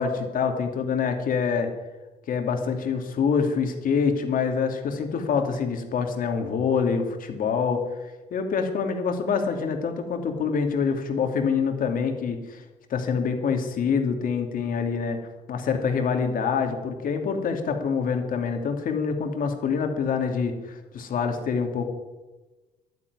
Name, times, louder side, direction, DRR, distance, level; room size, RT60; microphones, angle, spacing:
voice 1, 0.0-1.7 2.3-7.8 8.3-12.6 12.9-15.2 15.5-21.9, left 6 dB, 55° left, 5 dB, 2.5 m, -26 dB
11.0 x 9.7 x 9.6 m, 1.2 s
cardioid pair, 110°, 17 cm